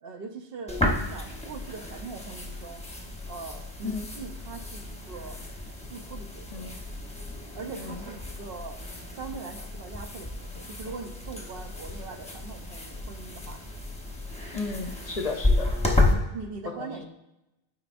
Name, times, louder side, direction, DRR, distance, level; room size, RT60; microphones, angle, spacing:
voice 1, 0.0-5.4 5.9-6.7 7.5-8.8 9.1-13.6 16.1-17.1, right 4 dB, 70° right, 5 dB, 0.9 m, -41 dB
sound 1, 0.7-16.1, left 2 dB, 5° left, 0.9 m, -31 dB
voice 2, 14.5-15.7 16.8-17.1, left 4 dB, 45° left, 4 dB, 0.6 m, -34 dB
12.0 x 4.8 x 2.5 m, 0.94 s
omnidirectional pair, 1.0 m